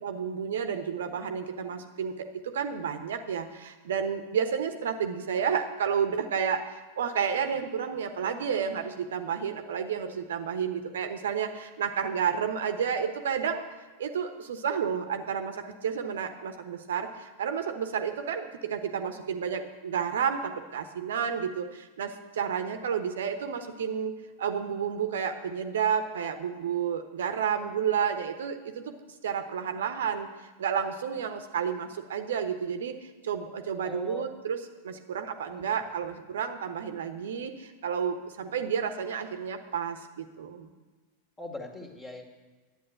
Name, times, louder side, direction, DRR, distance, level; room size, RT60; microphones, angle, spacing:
voice 1, 0.0-13.6 14.0-28.9 29.2-30.3 30.6-40.7, right 7 dB, 60° right, 8 dB, 1.0 m, -31 dB
voice 2, 33.8-34.2 35.5-35.7 41.4-42.2, left 2 dB, 15° left, 2 dB, 2.2 m, -40 dB
11.0 x 9.1 x 7.8 m, 1.3 s
figure-of-eight pair, 90°, 0 cm